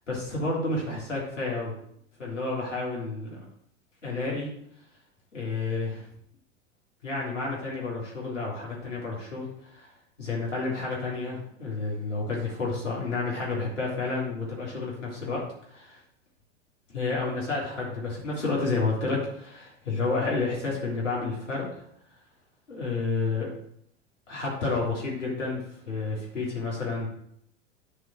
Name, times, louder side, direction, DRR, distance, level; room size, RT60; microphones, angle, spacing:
voice 1, 0.1-1.7 2.2-3.4 4.0-4.5 5.3-6.1 7.0-9.9 10.2-15.4 15.7-16.0 16.9-21.7 22.7-23.5 24.3-27.1, left 3 dB, 85° left, -5 dB, 3.5 m, -30 dB
10.0 x 5.1 x 6.4 m, 0.70 s
figure-of-eight pair, 90°, 36 cm